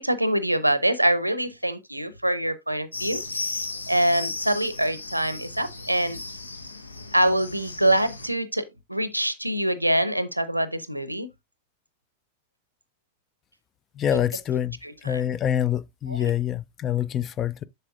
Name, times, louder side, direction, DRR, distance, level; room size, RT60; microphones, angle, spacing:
voice 1, 0.0-6.2 7.1-11.3 14.1-14.2 14.8-15.2 16.1-16.3, right 1 dB, 90° right, 0.6 m, -25 dB
sound 1, 2.9-8.3, left 3 dB, 80° left, 0.7 m, -35 dB
voice 2, 14.0-17.7, left 10 dB, 25° left, 0.4 m, -26 dB
7.5 x 6.7 x 2.4 m
figure-of-eight pair, 90°, 0 cm